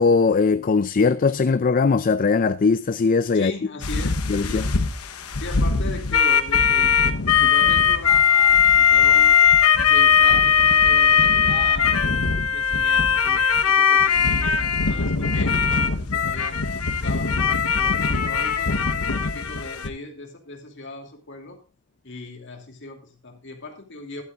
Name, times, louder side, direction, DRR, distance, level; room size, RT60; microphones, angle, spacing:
voice 1, 0.0-3.5 4.3-4.7, left 4 dB, 40° left, 0.4 m, -20 dB
voice 2, 3.3-4.9 5.4-9.5 9.8-12.0 12.5-18.8 19.2-21.6 22.0-24.2, left 3 dB, 55° left, 2.7 m, -38 dB
sound 1, 3.8-19.9, left 6 dB, 85° left, 1.0 m, -19 dB
12.0 x 11.5 x 2.4 m
head